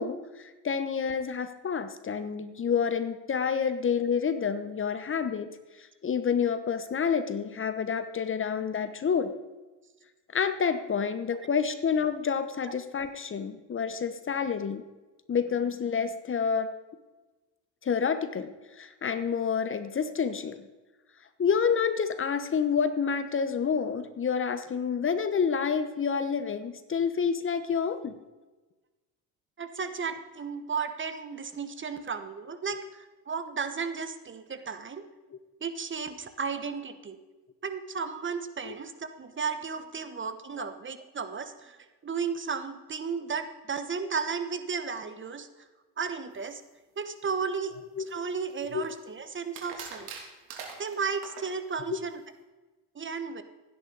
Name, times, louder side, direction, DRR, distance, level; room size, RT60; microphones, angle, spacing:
voice 1, 0.0-5.5 5.8-9.3 10.3-14.8 15.3-16.7 17.8-20.6 21.4-28.1 32.7-32.8 38.6-38.7 40.6-40.7 48.0-48.1 48.7-48.8 51.9-52.0, left 6 dB, 30° left, 11 dB, 1.0 m, -28 dB
voice 2, 29.6-35.1 35.6-37.2 37.6-41.8 42.0-45.6 46.0-46.6 47.0-47.7 48.1-50.1 50.8-52.2 52.9-53.4, right 5 dB, 30° right, 10 dB, 1.3 m, -34 dB
sound 1, 48.1-48.9 49.5-51.5, right 6 dB, 75° right, 3.1 m, -43 dB
16.0 x 9.8 x 4.1 m, 1.2 s
supercardioid pair, 85°, 40 cm